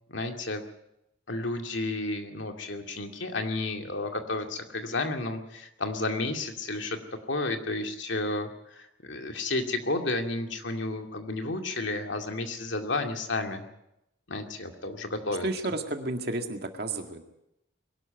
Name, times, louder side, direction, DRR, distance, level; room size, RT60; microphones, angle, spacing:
voice 1, 0.1-0.6 1.3-7.0 7.3-13.7 14.3-15.5, left 2 dB, 70° left, 4 dB, 2.3 m, -32 dB
voice 2, 15.4-17.2, right 2 dB, 50° right, 4 dB, 2.0 m, -32 dB
22.0 x 12.5 x 9.3 m, 0.84 s
head